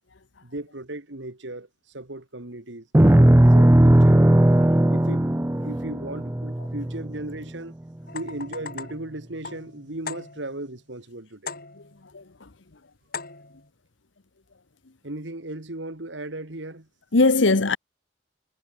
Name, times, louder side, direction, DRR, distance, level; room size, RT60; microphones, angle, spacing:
voice 1, 0.4-1.7 1.9-4.2 4.9-5.3 5.6-7.7 8.1-11.6 15.0-16.9, right 1 dB, 65° right, 2.2 m, -36 dB
sound 1, 2.9-7.4, right 1 dB, 10° right, 0.5 m, -17 dB
sound 2, 8.1-10.7 11.5-12.1 13.1-13.7, left 4 dB, 50° left, 7.1 m, -39 dB
voice 2, 11.7-12.5 17.1-17.8, left 3 dB, 70° left, 1.1 m, -22 dB
head